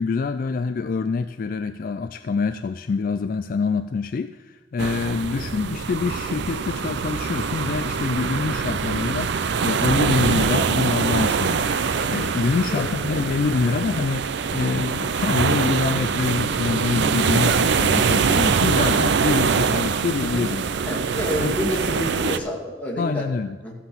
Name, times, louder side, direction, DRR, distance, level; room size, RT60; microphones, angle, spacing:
voice 1, 0.0-11.7 12.1-20.6 21.4-21.6 23.0-23.6, left 4 dB, 45° left, 10 dB, 0.3 m, -25 dB
sound 1, 4.8-22.4, right 5 dB, 65° right, 0.4 m, -23 dB
voice 2, 20.8-23.2 23.6-23.7, left 1 dB, 10° left, -4 dB, 2.3 m, -28 dB
14.5 x 5.8 x 7.1 m, 1.3 s
head